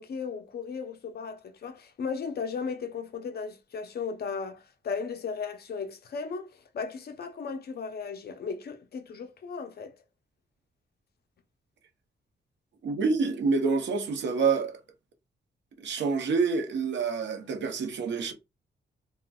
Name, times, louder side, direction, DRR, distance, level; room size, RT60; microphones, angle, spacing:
voice 1, 0.0-9.9, left 5 dB, 60° left, 0.6 m, -36 dB
voice 2, 12.8-14.8 15.8-18.3, right 4 dB, 80° right, 0.8 m, -27 dB
3.8 x 2.1 x 2.3 m
wide cardioid pair, 140°, 19 cm